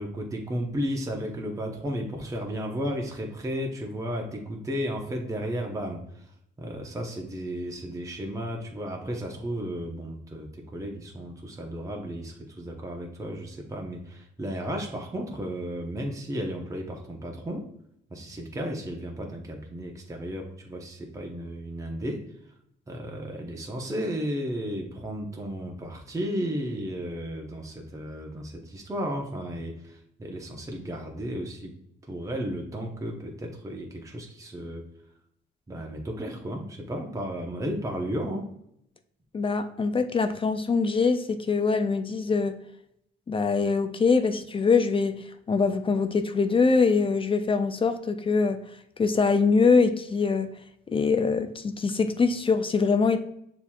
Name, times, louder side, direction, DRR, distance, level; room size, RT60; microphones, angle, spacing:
voice 1, 0.0-17.6 18.1-22.5 22.9-31.7 32.0-34.8 35.7-38.5, equal, 15° right, 0.8 m, -34 dB
voice 2, 39.3-42.6 43.3-48.6 49.0-50.5 50.9-53.2, left 4 dB, 25° left, 0.4 m, -23 dB
6.7 x 2.9 x 2.3 m
cardioid pair, 90°, 20 cm